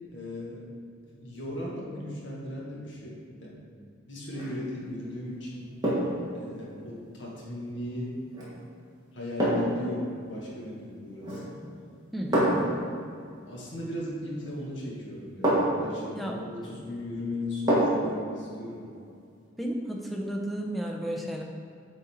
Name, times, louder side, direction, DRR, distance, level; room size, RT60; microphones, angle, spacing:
voice 1, 0.1-0.7 1.1-3.6 4.1-5.7 6.3-8.1 9.1-11.6 12.6-18.9, left 1 dB, 75° left, -4 dB, 1.5 m, -37 dB
sound 1, 4.3-4.6 5.8-6.3 8.3-8.5 9.4-9.9 11.2-11.6 12.3-12.8 14.4-14.6 15.4-15.9 17.7-18.1 18.5-18.6, right 1 dB, 20° right, 1.6 m, -26 dB
voice 2, 12.1-12.7 16.1-16.4 19.6-21.4, equal, ahead, 0 dB, 0.6 m, -33 dB
7.8 x 4.0 x 4.3 m, 2.3 s
head